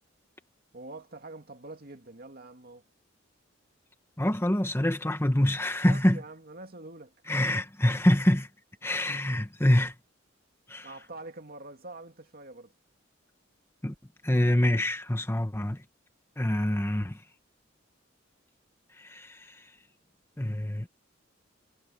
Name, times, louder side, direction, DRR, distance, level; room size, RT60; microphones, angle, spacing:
voice 1, 0.7-2.8 5.8-7.1 10.8-12.7, right 2 dB, 50° right, 2.6 m, -45 dB
voice 2, 4.2-6.2 7.3-8.5 8.8-9.9 10.7-10.9 13.8-13.9 14.2-15.8 16.4-17.2 19.0-19.7 20.4-20.9, left 1 dB, 15° left, 1.2 m, -26 dB
head